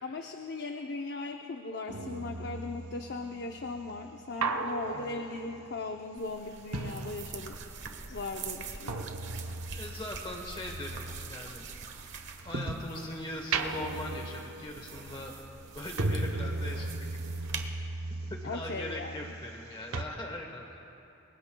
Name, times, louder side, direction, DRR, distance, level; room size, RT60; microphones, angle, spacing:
voice 1, 0.0-7.6 8.1-9.0 18.4-19.3, left 3 dB, 50° left, 4 dB, 0.6 m, -38 dB
sound 1, 1.9-7.9 8.1-13.0 13.4-19.7 19.9-20.0, right 2 dB, 80° right, 0.9 m, -37 dB
sound 2, 6.2-17.7, right 6 dB, 55° right, 1.2 m, -45 dB
voice 2, 9.7-11.7 12.4-15.3 15.7-17.1 18.3-20.9, left 1 dB, 20° left, 1 dB, 1.1 m, -41 dB
28.5 x 22.5 x 2.3 m, 3.0 s
head